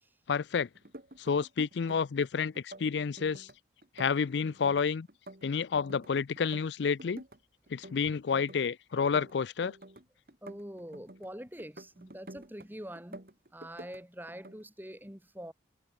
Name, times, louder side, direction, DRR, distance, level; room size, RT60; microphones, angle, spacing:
voice 1, 0.3-0.7 1.2-3.5 4.0-5.1 5.4-7.2 7.7-9.8, left 6 dB, 70° left, 0.4 m, -30 dB
sound 1, 0.7-2.3 2.5-3.5 3.8-6.1 6.4-7.4 7.7-8.7 9.0-11.3 11.6-12.7 13.0-14.0 14.3-14.6, right 1 dB, 50° right, 2.4 m, -49 dB
voice 2, 10.4-13.3 13.5-15.5, equal, 10° right, 3.8 m, -45 dB
head